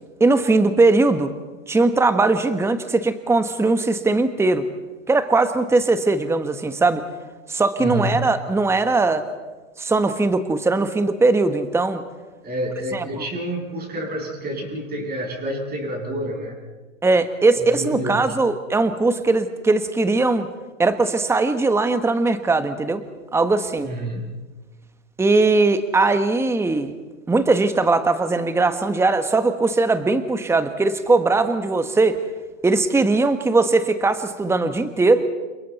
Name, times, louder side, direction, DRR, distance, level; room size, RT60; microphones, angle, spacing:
voice 1, 0.2-1.3 1.7-4.6 5.1-7.0 7.5-9.3 9.8-12.0 17.0-20.5 20.8-23.0 23.3-23.9 25.2-26.9 27.3-32.2 32.6-35.2, right 3 dB, 5° right, 10 dB, 1.2 m, -19 dB
voice 2, 7.8-8.3 12.4-16.6 17.6-18.4 23.8-24.4, equal, 25° right, 1 dB, 7.0 m, -29 dB
30.0 x 28.0 x 4.2 m, 1.3 s
hypercardioid pair, 105°, 39 cm